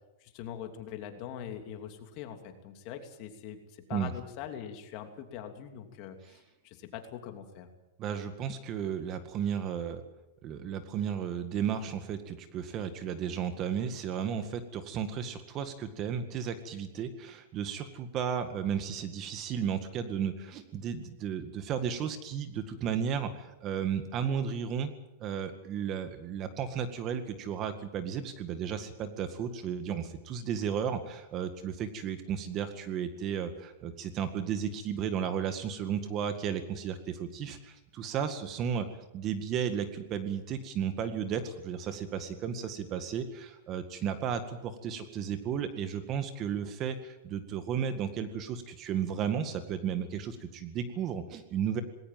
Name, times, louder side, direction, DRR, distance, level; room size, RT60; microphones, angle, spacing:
voice 1, 0.2-7.7, left 9 dB, 45° left, 5 dB, 3.0 m, -43 dB
voice 2, 8.0-10.0 10.4-24.9 25.2-38.9 39.1-51.8, right 8 dB, 30° right, 9 dB, 2.0 m, -34 dB
20.0 x 18.5 x 7.7 m, 0.95 s
supercardioid pair, 145°, 0 cm